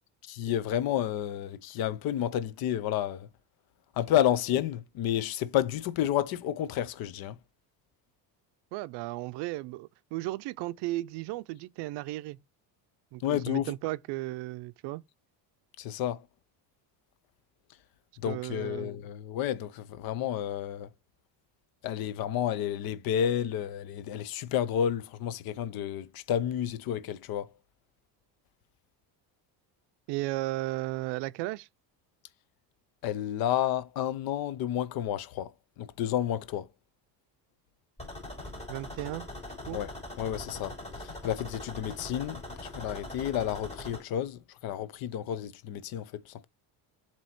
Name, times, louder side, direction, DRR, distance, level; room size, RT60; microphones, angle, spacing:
voice 1, 0.3-3.3 4.0-7.4 13.2-13.7 15.8-16.2 18.2-20.9 21.8-27.5 33.0-35.5 35.8-36.7 39.7-39.9 40.2-40.7 41.0-46.5, left 10 dB, 55° left, 0.7 m, -31 dB
voice 2, 8.7-12.4 13.1-15.0 18.3-18.9 30.1-31.7 38.7-39.3 39.7-39.8, right 18 dB, 70° right, 0.5 m, -35 dB
sound 1, 38.0-44.0, left 1 dB, 15° left, 4.0 m, -42 dB
7.5 x 3.0 x 4.3 m
cardioid pair, 160°, 43 cm